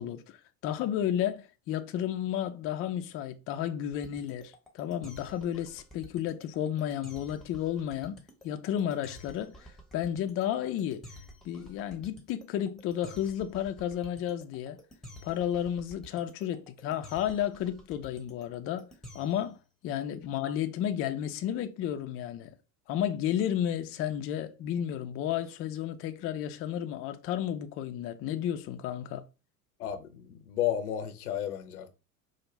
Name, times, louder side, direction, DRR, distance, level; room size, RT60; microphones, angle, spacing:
voice 1, 0.0-8.2 8.4-11.1 11.4-14.8 15.2-18.9 19.1-19.6 19.8-22.5 22.9-29.2, left 10 dB, 30° left, 0.4 m, -32 dB
sound 1, 3.9-19.6, left 1 dB, ahead, 1.0 m, -50 dB
voice 2, 29.8-31.9, left 11 dB, 80° left, 0.7 m, -33 dB
4.9 x 2.1 x 3.1 m
hypercardioid pair, 85°, 44 cm